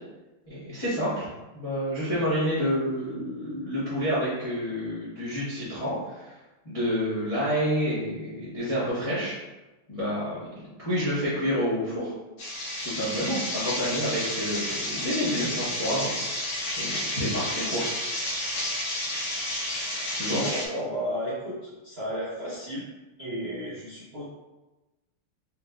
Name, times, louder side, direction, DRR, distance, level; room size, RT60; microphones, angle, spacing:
voice 1, 0.5-1.3 1.5-6.3 6.6-9.4 9.9-10.5 10.8-12.1 12.8-16.5 16.8-17.8 20.1-20.4, equal, 30° left, -10 dB, 0.6 m, -29 dB
sound 1, 12.4-20.7, left 1 dB, 80° left, 1.5 m, -31 dB
voice 2, 20.3-22.8 23.2-24.2, equal, 45° right, -10 dB, 0.8 m, -33 dB
3.3 x 3.3 x 2.3 m, 1.1 s
omnidirectional pair, 2.4 m